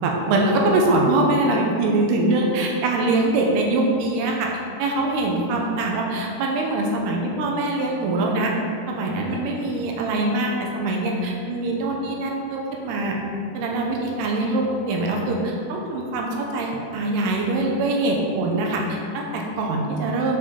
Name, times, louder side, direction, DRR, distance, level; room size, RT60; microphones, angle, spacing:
voice 1, 0.0-4.5 4.8-8.5 8.9-13.2 13.5-20.4, right 2 dB, 80° right, 0 dB, 2.8 m, -23 dB
7.1 x 5.5 x 5.1 m, 2.5 s
omnidirectional pair, 4.7 m